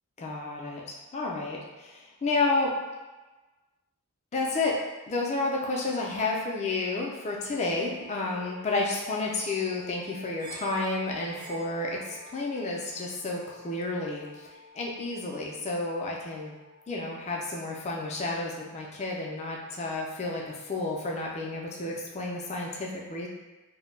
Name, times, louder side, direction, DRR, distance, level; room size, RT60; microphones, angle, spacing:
voice 1, 0.2-2.7 4.3-4.8 5.1-16.5 16.9-23.3, left 3 dB, 30° left, -1 dB, 0.3 m, -31 dB
sound 1, 7.8-19.5, equal, 45° right, 0.5 m, -51 dB
2.1 x 2.0 x 3.1 m, 1.2 s
head